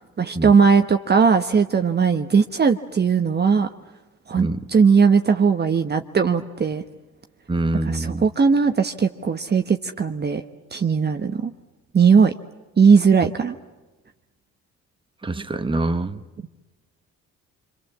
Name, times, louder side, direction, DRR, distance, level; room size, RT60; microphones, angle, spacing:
voice 1, 0.2-3.7 4.3-6.8 7.9-10.4 10.7-11.5 11.9-12.3 12.8-13.5, right 5 dB, 35° right, 6 dB, 1.1 m, -18 dB
voice 2, 7.5-8.3 15.2-16.2, right 2 dB, 15° right, 8 dB, 1.3 m, -25 dB
26.5 x 26.0 x 7.4 m, 1.2 s
cardioid pair, 90°, 30 cm